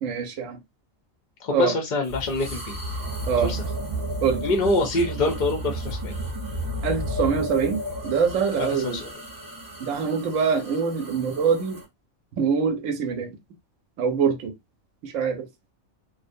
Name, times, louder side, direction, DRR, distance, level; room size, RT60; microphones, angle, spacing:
voice 1, 0.0-0.6 1.5-1.7 3.3-3.5 4.2-4.5 6.8-9.0 9.8-11.8 12.4-13.3 14.0-14.5 15.0-15.5, right 6 dB, 75° right, 0.9 m, -24 dB
voice 2, 1.4-2.8 3.4-3.6 4.4-6.1 8.6-9.1, left 2 dB, 55° left, 0.5 m, -25 dB
sound 1, 2.0-11.8, right 1 dB, 20° right, 0.7 m, -33 dB
2.6 x 2.0 x 2.5 m
omnidirectional pair, 1.4 m